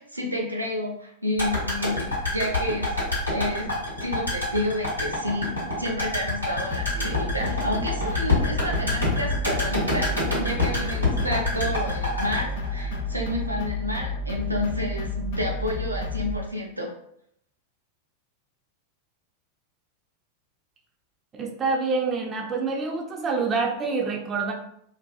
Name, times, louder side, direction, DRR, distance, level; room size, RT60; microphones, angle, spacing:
voice 1, 0.0-2.9 3.3-3.7 4.0-5.5 5.8-16.9, left 1 dB, 85° right, 0 dB, 0.5 m, -30 dB
sound 1, 1.4-13.6 13.8-13.9, left 2 dB, 90° left, 0.8 m, -27 dB
sound 2, 6.7-16.4, left 2 dB, 50° left, 0.4 m, -31 dB
voice 2, 21.3-24.5, right 4 dB, 25° right, 1 dB, 0.4 m, -26 dB
2.4 x 2.2 x 2.3 m, 0.71 s
figure-of-eight pair, 90°, 0 cm